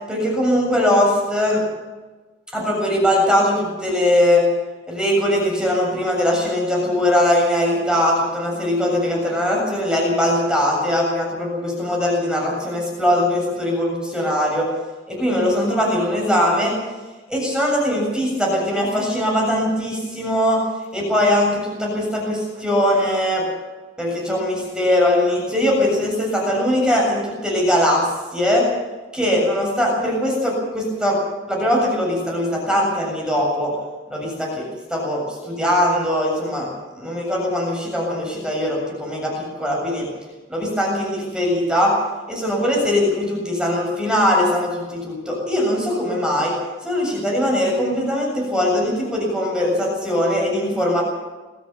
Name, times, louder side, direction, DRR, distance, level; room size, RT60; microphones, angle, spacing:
voice 1, 0.1-1.6 2.5-4.4 4.9-14.7 15.1-16.7 17.3-20.6 20.9-23.4 24.0-28.7 29.1-31.2 31.5-33.7 34.1-36.7 37.0-40.1 40.5-41.9 42.3-46.5 46.8-51.0, left 1 dB, 5° right, -2 dB, 7.3 m, -20 dB
23.0 x 15.5 x 7.4 m, 1.2 s
head